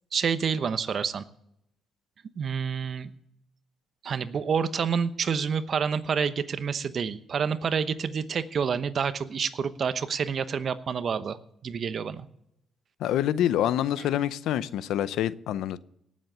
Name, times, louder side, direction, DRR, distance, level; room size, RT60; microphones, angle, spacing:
voice 1, 0.1-1.2 2.4-3.1 4.0-11.4 11.6-12.3, right 6 dB, 50° right, 0.9 m, -28 dB
voice 2, 13.0-15.8, left 11 dB, 85° left, 0.6 m, -26 dB
18.5 x 7.5 x 6.9 m
cardioid pair, 90°, 0 cm